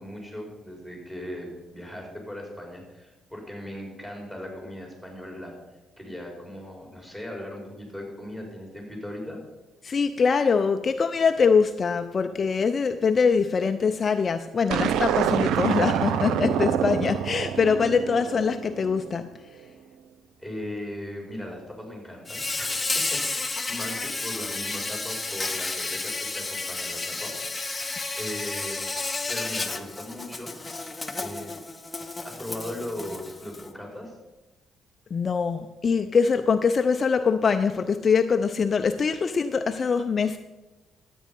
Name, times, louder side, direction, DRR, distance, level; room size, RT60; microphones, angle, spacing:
voice 1, 0.0-5.5 6.0-9.4 20.4-27.3 28.1-28.9 29.3-30.5 31.2-31.5 32.2-34.2, left 1 dB, 10° right, 0 dB, 4.6 m, -38 dB
voice 2, 9.8-19.3 35.1-40.4, left 5 dB, 40° left, 7 dB, 0.6 m, -23 dB
sound 1, 14.7-19.1, right 9 dB, 85° right, 0.5 m, -26 dB
Insect, 22.3-33.7, left 3 dB, 20° left, 0.9 m, -32 dB
12.5 x 8.5 x 5.4 m, 1.1 s
cardioid pair, 105°, 0 cm